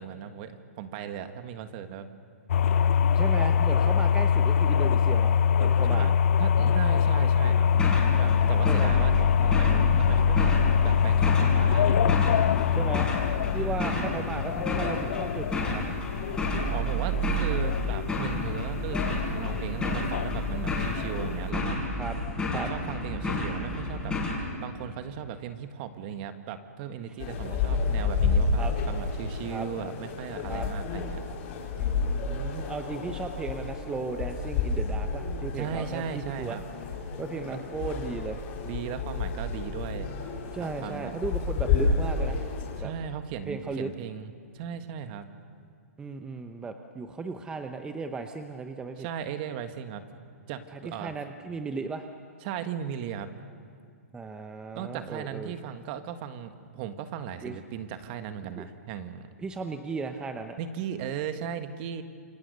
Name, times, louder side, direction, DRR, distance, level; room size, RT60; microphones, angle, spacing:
voice 1, 0.0-2.1 5.8-6.1 6.4-7.7 8.2-9.1 9.4-10.6 10.8-12.2 13.5-14.0 16.7-22.0 22.5-24.2 24.6-31.2 35.5-36.6 38.6-40.1 40.6-41.1 42.8-45.3 49.0-50.0 50.5-51.1 52.4-53.3 54.7-59.3 60.6-62.0, right 8 dB, 35° right, 8 dB, 1.7 m, -37 dB
sound 1, 2.5-21.5, left 7 dB, 60° left, 0.7 m, -24 dB
voice 2, 3.1-6.1 8.7-8.9 12.7-13.1 13.5-15.8 22.0-22.2 22.5-22.7 27.3-27.9 28.6-28.7 29.5-29.7 30.4-30.7 31.8-36.6 37.2-38.4 40.5-42.5 42.8-42.9 43.5-43.9 46.0-49.1 50.7-52.1 54.1-55.5 57.4-57.6 58.4-58.6 59.4-60.6, right 4 dB, 10° right, 6 dB, 0.9 m, -36 dB
sound 2, 7.6-24.4, left 1 dB, 10° left, 6.2 m, -31 dB
sound 3, 27.2-42.8, left 4 dB, 40° left, 4.7 m, -30 dB
28.5 x 24.0 x 6.8 m, 2.2 s
hypercardioid pair, 145°, 8 cm